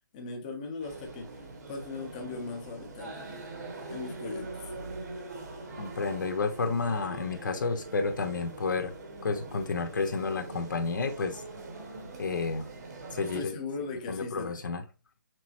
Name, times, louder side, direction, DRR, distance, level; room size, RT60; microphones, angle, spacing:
voice 1, 0.1-3.5 3.9-4.7 13.2-14.6, left 3 dB, 20° left, 0.8 m, -39 dB
sound 1, 0.8-13.4, right 2 dB, 55° right, 1.2 m, -43 dB
voice 2, 5.8-8.9 9.2-11.4 12.2-12.7 13.1-13.5 14.1-14.8, left 4 dB, 75° left, 1.0 m, -31 dB
6.0 x 2.1 x 2.9 m
hypercardioid pair, 170°, 11 cm